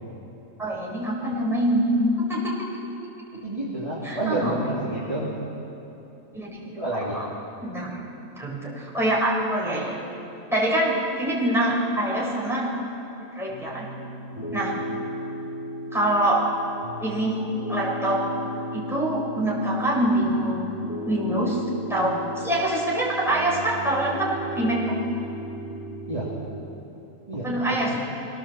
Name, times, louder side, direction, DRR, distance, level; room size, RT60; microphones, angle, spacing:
voice 1, 0.6-2.5 4.0-4.5 4.9-5.0 6.3-6.5 7.1-7.3 7.6-7.9 8.4-10.0 10.5-12.7 13.3-13.9 14.5-14.7 15.9-16.5 17.0-17.4 17.7-18.3 18.7-20.8 21.0-21.6 21.9-25.0 27.4-28.0, right 1 dB, ahead, -5 dB, 4.9 m, -24 dB
voice 2, 3.4-5.4 6.6-7.2 14.3-14.6 26.1-26.3 27.3-28.0, right 1 dB, 20° right, -8 dB, 3.1 m, -29 dB
Piano, 13.5-26.6, equal, 30° left, 6.0 m, -35 dB
23.0 x 18.0 x 7.4 m, 2.9 s
omnidirectional pair, 1.5 m